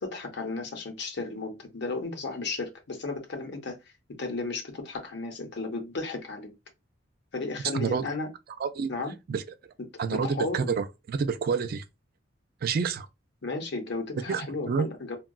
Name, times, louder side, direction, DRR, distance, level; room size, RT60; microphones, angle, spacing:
voice 1, 0.0-3.8 4.2-6.5 7.3-8.3 8.9-9.2 9.8-10.7 13.4-15.2, left 3 dB, 65° left, 0.8 m, -34 dB
voice 2, 7.7-8.0 8.6-8.9 9.3-9.4 10.0-11.8 12.6-13.1 14.3-14.9, right 5 dB, 50° right, 0.3 m, -28 dB
3.7 x 2.2 x 2.2 m
head